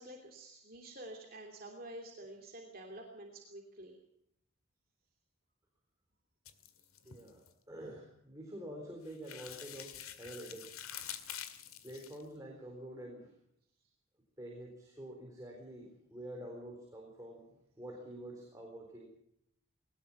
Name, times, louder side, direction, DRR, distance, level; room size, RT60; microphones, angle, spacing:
voice 1, 0.0-4.0, right 1 dB, 45° right, 1 dB, 3.0 m, -49 dB
sound 1, 6.5-7.5 9.1-12.2, left 10 dB, 85° left, 2.1 m, -47 dB
voice 2, 7.0-10.8 11.8-13.3 14.4-17.5 17.8-19.1, right 1 dB, 15° right, 0 dB, 4.0 m, -47 dB
21.0 x 19.0 x 7.2 m, 0.72 s
head